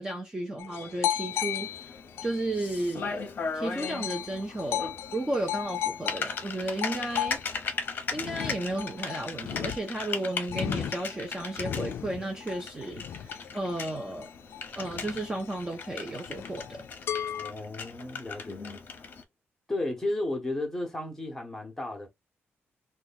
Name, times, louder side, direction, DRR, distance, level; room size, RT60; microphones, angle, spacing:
voice 1, 0.0-3.3 3.5-7.4 8.1-14.3 14.8-16.8, right 1 dB, 15° right, 0.6 m, -33 dB
sound 1, 0.6-3.3 3.8-17.5, left 10 dB, 70° left, 0.3 m, -36 dB
Typing, 1.2-19.2, left 5 dB, 45° left, 0.8 m, -38 dB
voice 2, 17.4-18.8 19.7-22.1, left 2 dB, 10° left, 0.9 m, -33 dB
3.0 x 2.2 x 4.0 m
wide cardioid pair, 175°, 4 cm